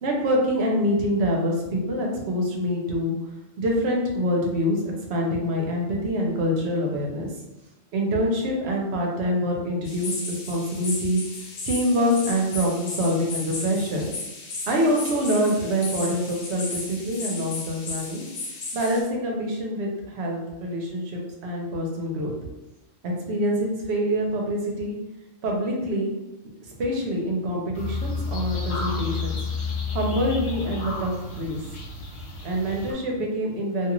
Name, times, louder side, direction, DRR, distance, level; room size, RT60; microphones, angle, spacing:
voice 1, 0.0-3.2 3.6-7.3 7.9-11.2 11.7-14.0 14.7-18.2 18.7-22.3 23.0-25.0 25.4-26.1 26.8-29.3 29.9-31.6 32.4-33.9, equal, 65° right, 0 dB, 0.8 m, -25 dB
sound 1, 9.8-19.0, left 3 dB, 85° left, 1.1 m, -35 dB
sound 2, 27.7-32.9, left 4 dB, 55° left, 0.3 m, -31 dB
2.5 x 2.4 x 2.9 m, 1.0 s
omnidirectional pair, 1.3 m